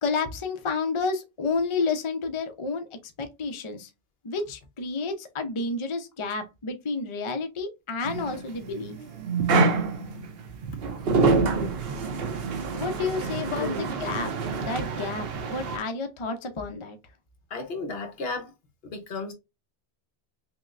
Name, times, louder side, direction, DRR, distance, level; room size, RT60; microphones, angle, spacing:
voice 1, 0.0-2.9 3.2-3.9 4.2-9.0 12.7-14.3 14.6-17.0, left 4 dB, 40° left, 0.5 m, -30 dB
sound 1, 8.0-15.8, right 4 dB, 65° right, 0.8 m, -27 dB
voice 2, 11.3-11.8 13.5-13.9 17.5-18.5 18.9-19.3, left 2 dB, 65° left, 1.1 m, -34 dB
5.7 x 2.0 x 2.4 m
omnidirectional pair, 1.1 m